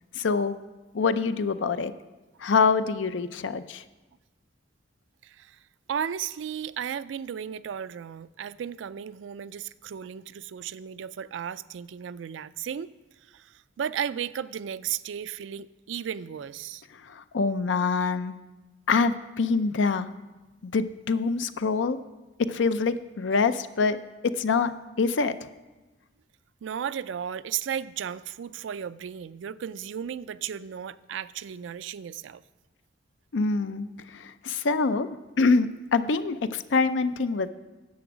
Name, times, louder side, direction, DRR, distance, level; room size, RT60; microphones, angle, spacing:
voice 1, 0.1-0.5 0.9-1.9 2.4-3.8 17.0-18.4 18.9-20.1 20.6-22.0 22.4-24.0 24.2-25.5 33.3-35.1 35.4-37.5, left 4 dB, 85° left, 12 dB, 0.5 m, -25 dB
voice 2, 5.2-5.6 5.9-12.9 13.3-16.8 26.6-32.4, right 8 dB, 85° right, 17 dB, 0.4 m, -35 dB
10.5 x 7.8 x 6.1 m, 1.2 s
head